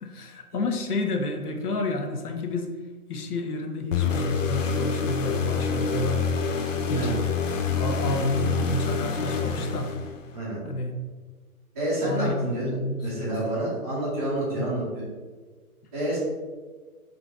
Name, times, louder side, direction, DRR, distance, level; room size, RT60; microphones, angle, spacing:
voice 1, 0.0-2.7 3.1-6.3 6.9-7.1 7.7-9.9 10.6-10.9 12.0-13.3 14.6-14.7, left 2 dB, 80° left, 4 dB, 0.9 m, -30 dB
sound 1, 3.9-10.4, left 5 dB, 55° left, 0.6 m, -27 dB
voice 2, 11.7-15.1 15.9-16.2, right 1 dB, 10° right, -16 dB, 0.6 m, -28 dB
3.9 x 2.6 x 4.6 m, 1.4 s
hypercardioid pair, 165°, 45 cm